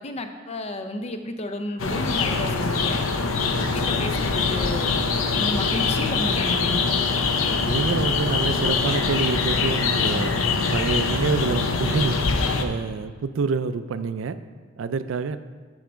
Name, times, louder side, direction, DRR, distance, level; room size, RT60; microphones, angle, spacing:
voice 1, 0.0-3.0 3.5-4.9 5.3-6.9, left 2 dB, 30° left, 7 dB, 0.5 m, -32 dB
sound 1, 1.8-12.6, left 4 dB, 85° left, 0.6 m, -23 dB
voice 2, 7.6-10.3 10.7-12.2 12.6-14.4 14.8-15.4, right 5 dB, 65° right, 12 dB, 0.4 m, -27 dB
10.0 x 3.4 x 5.0 m, 1.5 s
head